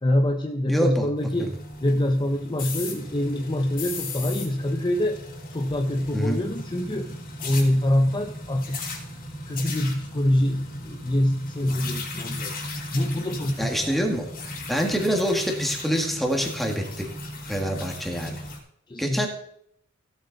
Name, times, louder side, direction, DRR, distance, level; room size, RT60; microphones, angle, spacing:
voice 1, 0.0-5.2 5.5-8.8 9.5-14.0 18.9-19.3, left 1 dB, 20° left, 4 dB, 0.7 m, -25 dB
voice 2, 0.7-1.1 1.4-1.5 6.1-6.4 13.6-14.3 14.7-17.1 17.5-18.4 19.0-19.3, equal, ahead, 2 dB, 1.8 m, -25 dB
sound 1, 1.2-18.6, left 2 dB, 45° left, 2.8 m, -37 dB
15.5 x 8.0 x 4.0 m, 0.71 s
head